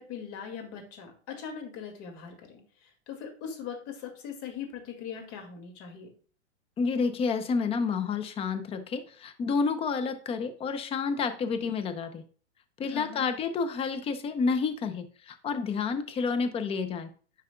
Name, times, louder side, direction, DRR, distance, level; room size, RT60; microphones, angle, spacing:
voice 1, 0.0-6.1 12.8-13.2, left 7 dB, 40° left, 4 dB, 2.1 m, -41 dB
voice 2, 6.8-12.2 12.8-17.1, left 5 dB, 15° left, 9 dB, 0.6 m, -29 dB
9.7 x 4.8 x 2.2 m, 0.43 s
hypercardioid pair, 125°, 36 cm